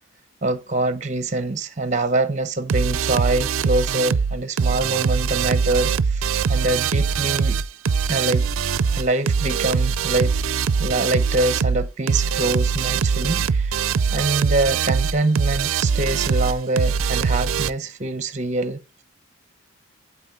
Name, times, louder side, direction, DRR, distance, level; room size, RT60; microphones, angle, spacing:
voice 1, 0.4-7.6 8.1-8.5 9.0-10.4 10.8-13.8 14.1-19.0, right 2 dB, 35° right, 0.8 m, -24 dB
sound 1, 2.7-17.7, right 6 dB, 80° right, 0.4 m, -22 dB
8.6 x 8.5 x 3.7 m
head